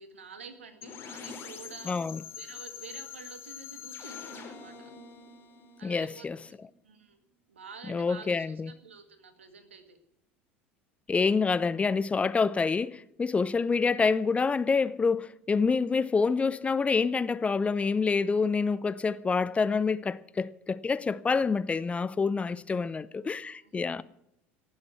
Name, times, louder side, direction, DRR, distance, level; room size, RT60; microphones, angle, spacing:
voice 1, 0.0-1.9 2.4-4.9 5.8-6.3 6.8-7.2 7.5-10.0 13.6-13.7 23.6-24.0, right 5 dB, 85° right, 1.8 m, -49 dB
sound 1, 0.8-6.6, left 7 dB, 40° left, 3.3 m, -44 dB
voice 2, 1.9-2.2 5.8-6.4 7.9-8.7 11.1-24.0, left 4 dB, 20° left, 0.6 m, -27 dB
17.0 x 7.5 x 9.1 m
hypercardioid pair, 75°, 6 cm